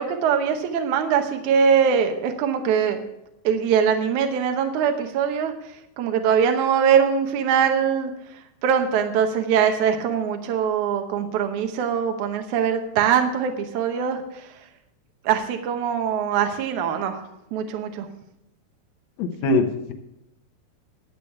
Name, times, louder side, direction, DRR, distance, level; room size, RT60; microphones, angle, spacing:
voice 1, 0.0-3.0 3.4-5.5 6.0-8.1 8.6-14.2 15.3-17.2 17.5-18.1, right 7 dB, 75° right, 5 dB, 1.8 m, -22 dB
voice 2, 19.2-19.9, left 2 dB, 75° left, 3 dB, 1.6 m, -22 dB
12.0 x 8.2 x 5.9 m, 0.86 s
omnidirectional pair, 4.7 m